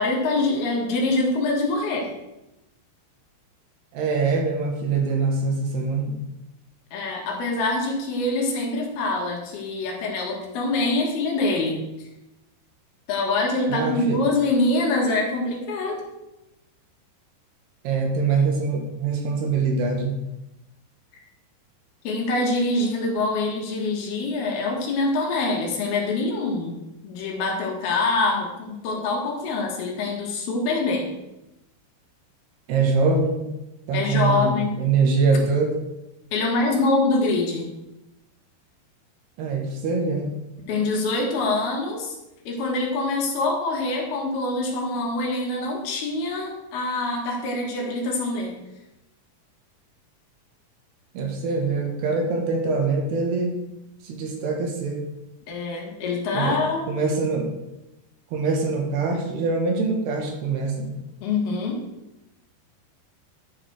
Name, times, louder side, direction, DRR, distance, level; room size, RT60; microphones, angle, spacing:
voice 1, 0.0-2.1 6.9-11.9 13.1-16.0 22.0-26.7 27.0-31.1 33.9-34.7 36.3-37.7 40.7-42.1 42.5-48.6 55.5-57.0 61.2-61.8, left 2 dB, 70° left, 0 dB, 3.4 m, -25 dB
voice 2, 3.9-6.2 13.7-14.2 17.8-20.2 32.7-33.5 33.9-35.8 39.4-40.3 51.1-53.6 54.0-55.0 56.3-56.5 56.9-57.5 58.3-60.9, right 4 dB, 75° right, 2 dB, 3.5 m, -23 dB
11.0 x 4.9 x 6.3 m, 0.93 s
omnidirectional pair, 4.8 m